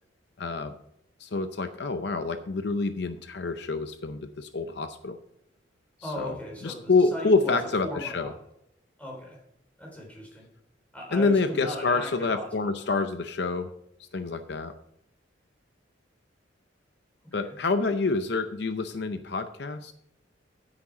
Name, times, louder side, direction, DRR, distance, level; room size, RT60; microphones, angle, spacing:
voice 1, 0.4-0.7 1.2-5.2 6.2-6.3 6.6-8.3 11.1-13.7 14.1-14.7 17.3-19.9, left 3 dB, 60° left, 9 dB, 0.6 m, -27 dB
voice 2, 6.0-7.6 7.8-8.4 9.0-9.4 9.8-10.5 10.9-12.5 17.3-17.6, left 1 dB, 10° left, -2 dB, 3.9 m, -38 dB
9.6 x 8.7 x 4.9 m, 0.76 s
head